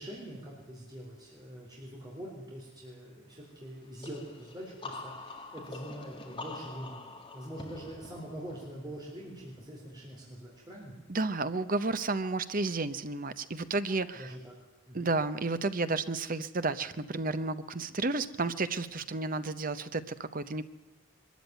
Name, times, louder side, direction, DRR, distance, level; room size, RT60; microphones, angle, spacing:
voice 1, 0.0-7.1 7.3-10.9 14.1-15.1, right 1 dB, 20° right, -3 dB, 3.8 m, -44 dB
sound 1, 4.0-9.6, left 2 dB, 25° left, 2.1 m, -45 dB
voice 2, 11.1-14.3 14.9-20.6, right 3 dB, 40° right, 12 dB, 0.8 m, -32 dB
22.5 x 13.5 x 9.3 m, 1.0 s
head